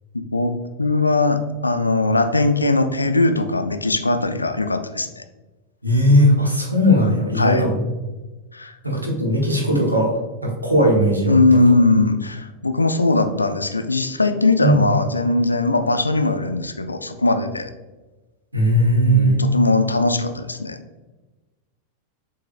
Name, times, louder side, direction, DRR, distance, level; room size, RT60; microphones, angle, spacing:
voice 1, 0.1-5.2 7.4-7.7 8.5-8.7 11.3-17.7 19.0-20.8, left 2 dB, 80° left, 8 dB, 0.3 m, -20 dB
voice 2, 5.8-7.8 8.8-10.1 10.4-11.3 14.6-14.9 18.5-19.4, equal, 85° right, -1 dB, 1.0 m, -17 dB
6.7 x 2.6 x 2.4 m, 1.2 s
figure-of-eight pair, 90°, 0 cm